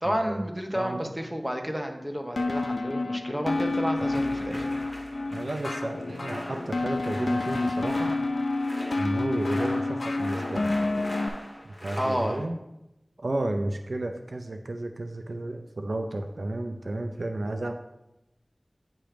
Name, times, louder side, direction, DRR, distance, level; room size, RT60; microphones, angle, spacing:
voice 1, 0.0-4.7 12.0-12.4, equal, 10° right, 3 dB, 0.9 m, -30 dB
voice 2, 0.7-1.1 5.3-8.2 9.0-10.7 11.8-12.6 13.2-17.7, right 1 dB, 80° right, 5 dB, 0.4 m, -32 dB
sound 1, 2.4-11.3, left 2 dB, 90° left, 0.4 m, -29 dB
sound 2, 3.9-12.4, equal, 10° left, 1.2 m, -41 dB
8.8 x 3.0 x 5.0 m, 0.92 s
wide cardioid pair, 55°, 0 cm